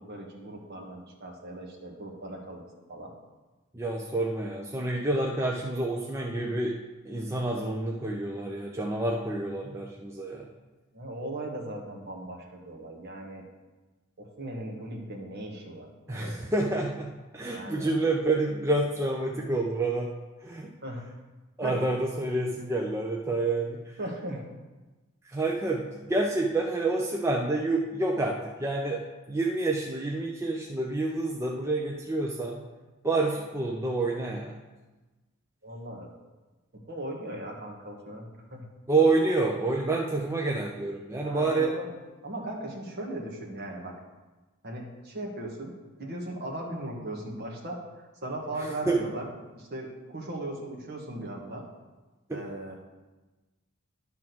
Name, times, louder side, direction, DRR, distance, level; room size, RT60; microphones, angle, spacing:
voice 1, 0.0-2.6 2.9-3.1 10.9-13.4 14.2-16.4 17.5-18.0 20.8-21.1 21.6-21.8 24.0-24.5 35.6-36.1 36.7-38.6 41.2-41.9 42.2-43.9 44.6-45.7 46.0-47.8 48.2-49.3 49.5-51.6 52.3-52.8, right 1 dB, 45° right, -1 dB, 1.5 m, -38 dB
voice 2, 3.7-6.8 7.0-10.5 16.1-17.1 17.3-20.1 20.4-20.7 21.6-23.9 25.2-32.6 33.0-34.6 38.9-41.7 48.6-49.0 52.3-52.4, right 2 dB, 10° right, -1 dB, 0.5 m, -28 dB
11.0 x 3.7 x 6.1 m, 1.2 s
head